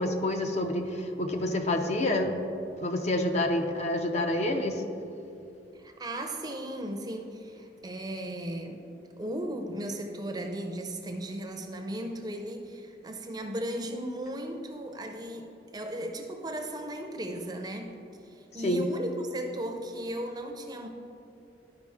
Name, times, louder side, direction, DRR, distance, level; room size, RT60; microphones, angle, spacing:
voice 1, 0.0-2.4 2.8-4.8 18.6-18.9, left 1 dB, 40° left, 4 dB, 0.5 m, -28 dB
voice 2, 5.7-8.8 9.2-15.5 15.7-17.9 18.2-20.9, right 1 dB, 20° right, 4 dB, 0.5 m, -36 dB
11.5 x 4.9 x 3.5 m, 2.7 s
head